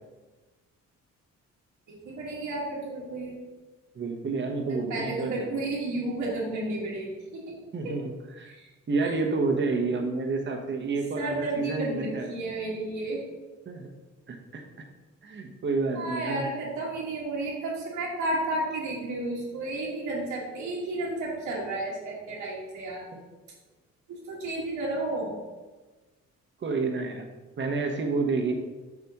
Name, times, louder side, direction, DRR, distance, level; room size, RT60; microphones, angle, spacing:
voice 1, 1.9-3.4 4.9-7.6 7.8-7.9 8.4-8.7 9.0-9.2 9.9-10.0 11.1-13.2 15.9-23.0 24.1-25.3, right 2 dB, 85° right, -5 dB, 1.7 m, -32 dB
voice 2, 3.9-5.6 7.7-8.1 8.4-8.5 8.9-12.3 13.7-13.9 14.3-14.6 15.2-16.5 26.6-27.3 27.6-28.5, right 3 dB, 40° right, 3 dB, 1.0 m, -29 dB
7.1 x 5.0 x 2.9 m, 1.2 s
cardioid pair, 90°, 30 cm